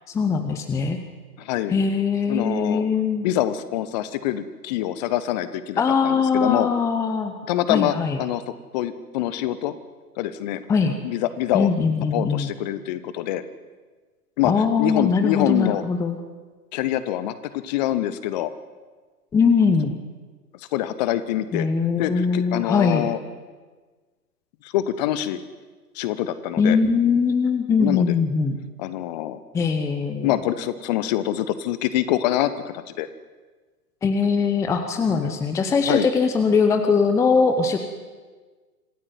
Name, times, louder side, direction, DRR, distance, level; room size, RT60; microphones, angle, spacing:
voice 1, 0.1-1.0 1.7-3.3 5.8-7.3 7.7-8.2 10.7-11.0 11.5-12.5 14.4-16.2 19.3-19.9 21.5-23.0 26.6-28.6 29.5-30.3 34.0-37.8, left 5 dB, 5° left, 7 dB, 0.9 m, -21 dB
voice 2, 1.4-1.7 2.3-2.9 3.2-6.7 7.5-8.4 8.7-9.8 10.2-10.6 11.0-11.7 12.1-13.4 14.4-15.8 16.7-18.5 20.7-21.7 22.0-23.2 24.6-25.4 25.9-26.8 27.8-28.2 28.8-29.4 30.2-33.1 35.2-35.3 35.9-36.1, left 13 dB, 25° left, 13 dB, 1.2 m, -25 dB
26.5 x 15.5 x 9.4 m, 1.4 s
figure-of-eight pair, 120°, 48 cm